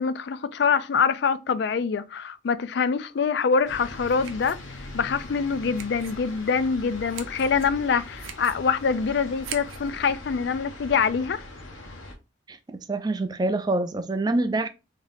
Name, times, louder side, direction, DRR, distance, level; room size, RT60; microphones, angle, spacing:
voice 1, 0.0-4.6 4.9-11.4, left 5 dB, 55° left, 0.3 m, -25 dB
sound 1, 3.6-9.9, right 8 dB, 85° right, 0.6 m, -45 dB
sound 2, 3.7-12.1, left 2 dB, 80° left, 1.0 m, -41 dB
voice 2, 12.5-14.7, right 2 dB, 20° right, 0.3 m, -26 dB
3.6 x 2.7 x 3.5 m
head